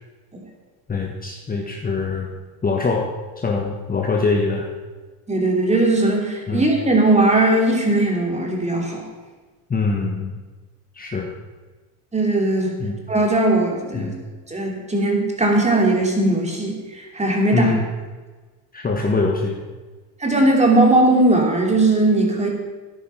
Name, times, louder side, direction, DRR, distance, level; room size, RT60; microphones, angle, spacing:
voice 1, 0.9-2.3 2.6-3.1 3.4-4.7 6.5-6.7 9.7-10.4 10.9-11.3 12.8-13.0 13.9-14.1 17.5-17.9 18.7-19.6, left 3 dB, 20° left, 1 dB, 1.3 m, -23 dB
voice 2, 5.3-9.1 12.1-12.7 13.1-14.1 14.5-17.7 20.2-22.5, right 2 dB, 15° right, 0 dB, 3.2 m, -18 dB
13.5 x 10.0 x 5.7 m, 1.3 s
cardioid pair, 130°, 46 cm